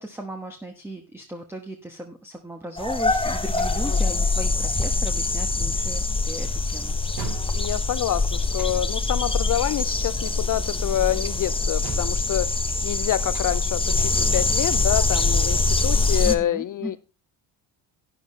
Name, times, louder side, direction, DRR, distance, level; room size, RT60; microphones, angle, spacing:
voice 1, 0.0-7.0 16.2-17.0, right 1 dB, 5° right, 1.3 m, -36 dB
sound 1, 2.8-16.3, left 3 dB, 10° left, 1.0 m, -24 dB
sound 2, 3.5-16.3, right 4 dB, 45° right, 4.6 m, -43 dB
voice 2, 3.8-4.2 7.5-12.5 12.8-17.0, left 12 dB, 45° left, 0.4 m, -27 dB
11.5 x 9.8 x 3.2 m
supercardioid pair, 80°, 49 cm